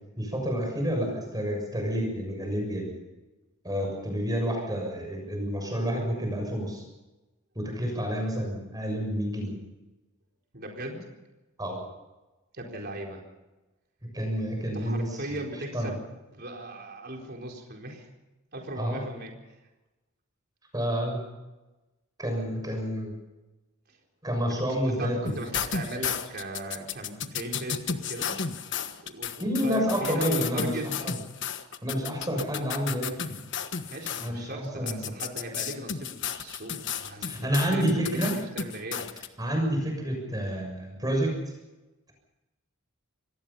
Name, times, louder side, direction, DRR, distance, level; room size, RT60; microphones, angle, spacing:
voice 1, 0.2-2.9 3.6-6.8 7.5-9.5 11.6-11.8 14.1-15.3 15.7-15.9 18.7-19.0 20.7-21.2 22.2-23.1 24.2-25.3 29.4-31.1 31.8-33.4 34.2-35.1 37.2-38.4 39.4-41.5, equal, 15° right, 2 dB, 6.7 m, -29 dB
voice 2, 10.5-11.1 12.5-13.2 14.7-16.0 16.3-18.1 18.5-19.3 23.9-24.0 24.5-24.6 25.0-28.4 29.1-31.0 33.9-38.3 38.5-39.1, right 1 dB, 45° right, 1 dB, 4.3 m, -38 dB
sound 1, 25.2-34.3 34.9-39.3, left 7 dB, 55° left, 1.4 m, -33 dB
26.5 x 18.5 x 5.6 m, 1.1 s
head